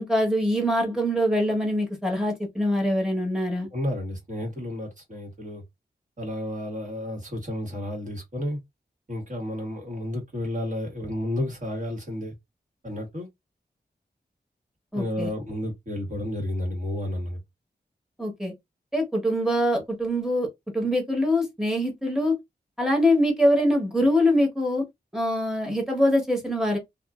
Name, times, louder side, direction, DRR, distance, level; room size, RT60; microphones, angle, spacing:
voice 1, 0.0-3.7 14.9-15.3 18.2-18.5 18.9-20.5 20.7-22.4 22.8-24.8 25.1-26.8, left 1 dB, 5° right, 1.1 m, -23 dB
voice 2, 3.7-5.6 6.2-8.6 9.1-12.3 12.8-13.3 14.9-17.4, left 1 dB, 45° right, 1.5 m, -31 dB
2.6 x 2.5 x 2.3 m
wide cardioid pair, 95°, 18 cm